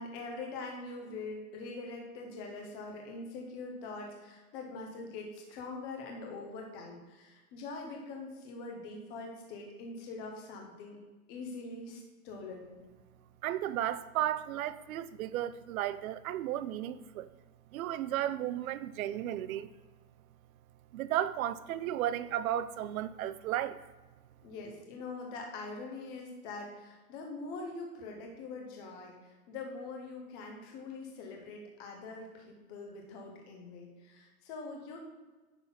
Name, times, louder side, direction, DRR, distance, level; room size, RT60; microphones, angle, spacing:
voice 1, 0.0-11.0 11.3-12.7 24.4-35.0, left 3 dB, 10° left, 0.4 m, -43 dB
voice 2, 13.4-17.3 17.7-19.7 20.9-23.8, right 12 dB, 65° right, 0.6 m, -34 dB
9.6 x 3.9 x 5.7 m
supercardioid pair, 165°, 44 cm